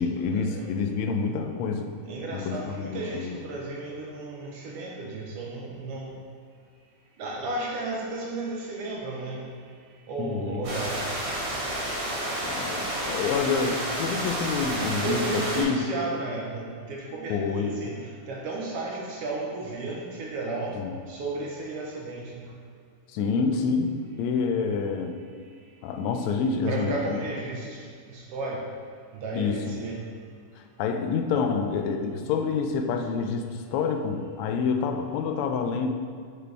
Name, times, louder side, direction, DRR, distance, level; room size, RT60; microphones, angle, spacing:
voice 1, 0.0-1.9 2.3-3.4 10.2-10.7 12.4-15.8 17.3-17.9 20.7-21.1 23.1-25.1 25.8-27.2 29.3-29.8 30.6-35.9, left 5 dB, 80° left, 5 dB, 1.7 m, -28 dB
voice 2, 2.1-6.1 7.2-9.4 10.1-11.0 15.0-20.8 21.1-22.4 26.7-27.8 28.1-28.6 29.1-30.0, right 2 dB, 70° right, -2 dB, 1.5 m, -33 dB
sound 1, 10.6-15.6, right 1 dB, 50° right, 2.4 m, -30 dB
6.7 x 4.9 x 3.3 m, 2.1 s
omnidirectional pair, 3.5 m